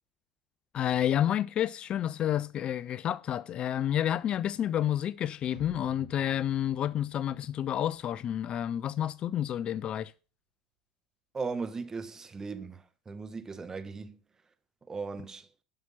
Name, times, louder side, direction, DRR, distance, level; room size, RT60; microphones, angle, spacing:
voice 1, 0.7-10.1, left 11 dB, 40° left, 0.4 m, -30 dB
sound 1, 5.5-8.8, right 3 dB, 85° right, 2.8 m, -54 dB
voice 2, 11.3-14.2 14.9-15.5, right 4 dB, 20° right, 1.3 m, -37 dB
11.5 x 5.9 x 5.6 m
hypercardioid pair, 80°, 3 cm